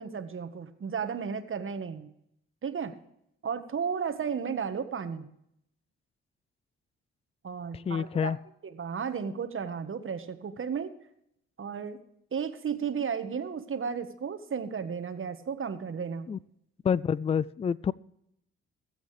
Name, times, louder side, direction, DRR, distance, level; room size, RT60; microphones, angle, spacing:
voice 1, 0.0-2.1 2.6-2.9 3.4-5.3 7.4-8.4 8.6-10.9 11.6-12.0 12.3-16.3, right 6 dB, 45° right, 9 dB, 1.5 m, -34 dB
voice 2, 7.7-8.4 16.3-16.4 16.8-17.9, left 7 dB, 20° left, 23 dB, 0.4 m, -28 dB
20.0 x 8.0 x 3.3 m, 0.75 s
hypercardioid pair, 45°, 30 cm